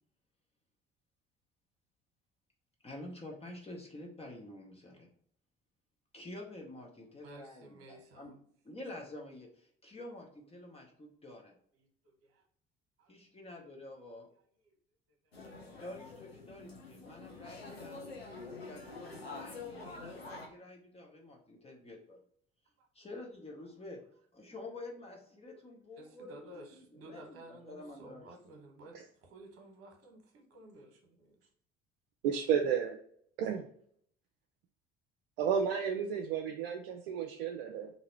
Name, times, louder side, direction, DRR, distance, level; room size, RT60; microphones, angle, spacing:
voice 1, 2.8-5.1 6.1-8.3 8.6-11.5 13.1-14.3 15.8-18.0 18.6-22.2 22.9-24.0 24.3-28.3, left 2 dB, 20° left, -1 dB, 0.9 m, -48 dB
voice 2, 7.2-8.4 12.0-12.4 13.0-13.1 13.4-13.5 22.8-22.9 25.4-25.5 26.0-31.4, right 1 dB, 50° right, 2 dB, 1.1 m, -54 dB
sound 1, 15.3-20.5, left 3 dB, 90° left, 0.6 m, -47 dB
voice 3, 32.2-33.0 33.4-33.6 35.4-37.9, right 7 dB, 65° right, 3 dB, 0.4 m, -32 dB
2.9 x 2.7 x 4.2 m, 0.64 s
figure-of-eight pair, 55°, 30 cm